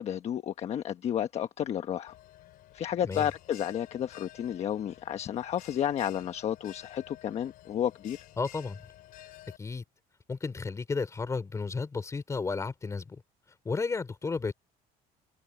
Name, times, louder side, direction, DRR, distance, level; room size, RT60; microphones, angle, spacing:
voice 1, 0.0-2.1 2.7-8.2, left 10 dB, 40° left, 1.2 m, -32 dB
Bell, 2.1-9.6, left 14 dB, 60° left, 5.7 m, -52 dB
voice 2, 8.4-8.8 9.6-9.8 10.3-13.2 13.6-14.5, left 4 dB, 20° left, 3.9 m, -33 dB
cardioid pair, 155°, 17 cm